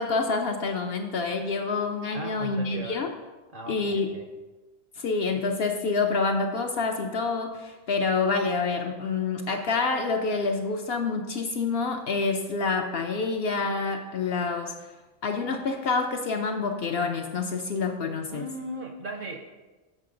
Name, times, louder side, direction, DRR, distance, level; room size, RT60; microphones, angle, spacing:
voice 1, 0.0-3.1 3.7-4.1 5.0-14.7 15.2-18.4, left 4 dB, 60° left, 4 dB, 0.7 m, -27 dB
voice 2, 2.1-3.1 3.5-4.3 18.3-19.5, right 2 dB, 55° right, 4 dB, 0.7 m, -37 dB
7.6 x 6.0 x 3.8 m, 1.2 s
omnidirectional pair, 1.4 m